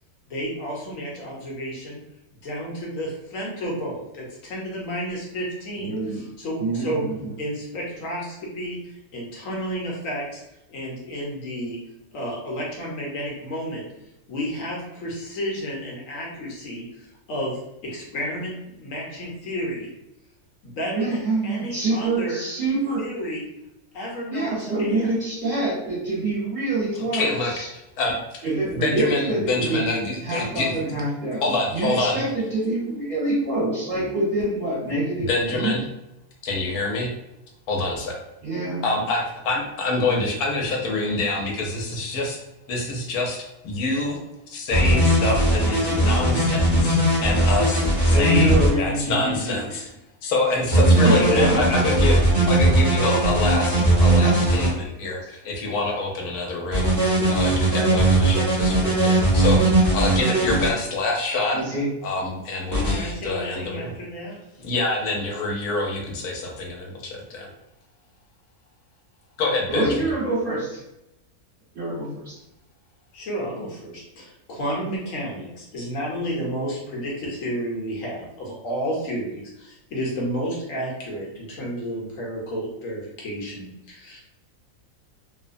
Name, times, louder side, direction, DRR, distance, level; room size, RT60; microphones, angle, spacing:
voice 1, 0.3-2.0 2.4-7.0 7.4-10.4 10.7-11.8 12.1-13.9 14.3-19.9 20.6-22.4 23.0-23.4 23.9-25.1 62.7-64.4 73.1-84.2, equal, 70° left, -3 dB, 1.1 m, -31 dB
voice 2, 5.8-6.2 6.6-7.3 20.9-23.0 24.3-27.7 28.4-29.9 30.2-35.7 38.4-38.9 48.1-49.8 51.0-52.0 52.8-52.9 61.5-61.8 69.7-70.8 71.7-72.4, right 2 dB, 40° right, -9 dB, 1.4 m, -26 dB
voice 3, 27.1-28.2 28.6-30.7 31.4-32.2 33.9-34.1 35.2-35.8 36.4-37.1 37.7-38.2 38.8-42.4 42.7-43.4 43.6-44.2 44.5-49.8 50.2-52.2 52.5-56.9 57.3-61.6 62.0-63.9 64.6-67.5 69.4-70.1, left 2 dB, 90° left, 0 dB, 1.2 m, -26 dB
sound 1, 44.7-48.7 50.7-54.7 56.7-60.7 62.7-62.9, right 1 dB, 15° right, 0.8 m, -19 dB
3.0 x 2.1 x 2.5 m, 0.88 s
omnidirectional pair, 1.5 m